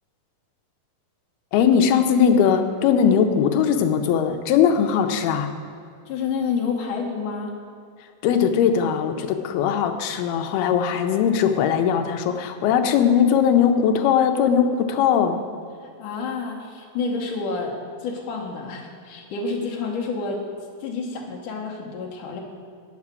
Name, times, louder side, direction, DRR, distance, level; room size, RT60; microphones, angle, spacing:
voice 1, 1.5-5.5 8.2-15.4, left 7 dB, 85° left, 5 dB, 2.6 m, -20 dB
voice 2, 6.1-7.5 16.0-20.4 20.8-22.4, left 4 dB, 65° left, 0 dB, 2.3 m, -29 dB
9.5 x 7.1 x 8.3 m, 2.4 s
omnidirectional pair, 4.6 m